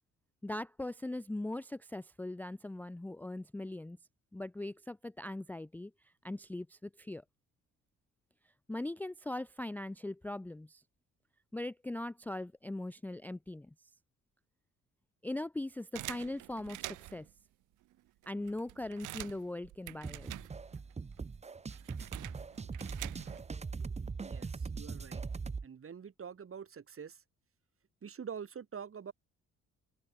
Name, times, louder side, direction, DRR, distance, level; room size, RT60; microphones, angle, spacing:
voice 1, 0.4-4.0 4.3-7.2 8.7-10.8 11.5-13.7 15.2-17.3 18.3-20.3, left 1 dB, 5° left, 0.5 m, -40 dB
sound 1, 15.9-17.3 17.9-18.0 18.2-20.9 21.2-23.5, right 17 dB, 90° right, 1.2 m, -46 dB
sound 2, 20.0-25.7, right 4 dB, 20° right, 0.8 m, -41 dB
voice 2, 23.9-25.2 25.6-27.2 28.0-29.1, right 7 dB, 45° right, 5.2 m, -46 dB
open air
cardioid pair, 90°, 30 cm